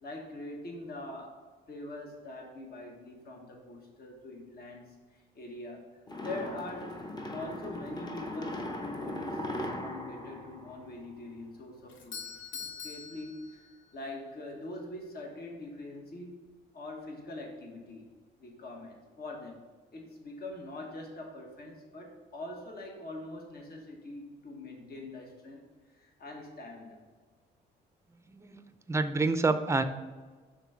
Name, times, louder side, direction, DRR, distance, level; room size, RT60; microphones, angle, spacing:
voice 1, 0.0-1.4 1.7-5.9 6.2-6.9 7.3-13.7 13.9-16.4 16.7-18.1 18.4-19.6 19.9-25.7 25.9-27.0, left 2 dB, 50° left, 1 dB, 1.4 m, -43 dB
sound 1, 6.1-11.4, left 1 dB, 20° left, 0.9 m, -39 dB
Doorbell, 11.9-14.1, left 6 dB, 75° left, 0.8 m, -44 dB
voice 2, 28.9-29.8, right 3 dB, 15° right, 10 dB, 0.5 m, -27 dB
6.0 x 3.8 x 5.8 m, 1.4 s
cardioid pair, 90°, 20 cm